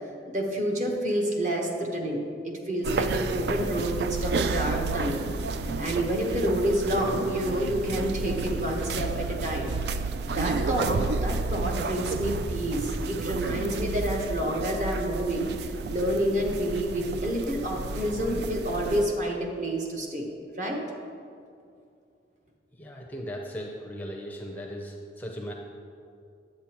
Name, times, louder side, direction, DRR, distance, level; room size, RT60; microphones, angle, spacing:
voice 1, 0.3-5.3 5.8-15.5 15.9-20.3 20.6-20.8, equal, 40° right, 0 dB, 1.1 m, -28 dB
sound 1, 2.8-19.1, right 4 dB, 65° right, 0.3 m, -31 dB
voice 2, 22.8-25.5, equal, 10° left, -1 dB, 0.5 m, -37 dB
10.0 x 7.7 x 3.0 m, 2.4 s
head